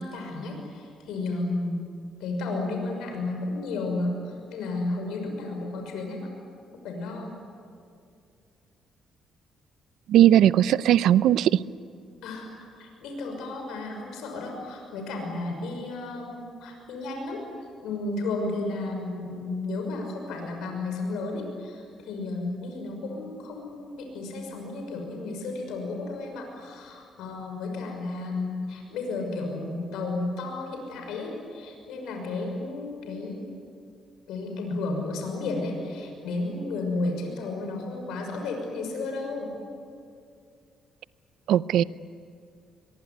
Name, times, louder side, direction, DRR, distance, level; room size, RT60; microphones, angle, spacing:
voice 1, 0.0-1.9 2.2-6.3 6.7-7.3 12.2-12.5 12.8-17.4 17.8-33.5 34.3-39.5, left 2 dB, 90° left, 3 dB, 6.1 m, -33 dB
voice 2, 10.1-11.6 41.5-41.8, right 11 dB, 80° right, 17 dB, 0.6 m, -18 dB
24.0 x 23.0 x 9.6 m, 2.4 s
cardioid pair, 90°, 0 cm